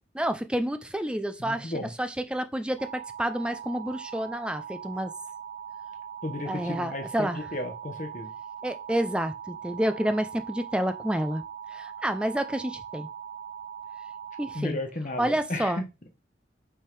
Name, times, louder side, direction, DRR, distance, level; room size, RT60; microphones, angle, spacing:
voice 1, 0.1-1.7 2.0-5.1 6.5-7.4 8.6-11.4 11.7-13.1 14.4-14.8 15.2-15.8, right 1 dB, 5° right, 0.4 m, -29 dB
voice 2, 1.4-1.9 6.2-8.3 14.5-15.9, left 1 dB, 40° left, 1.2 m, -34 dB
sound 1, 2.8-14.6, right 8 dB, 75° right, 0.9 m, -41 dB
5.6 x 3.6 x 4.6 m
head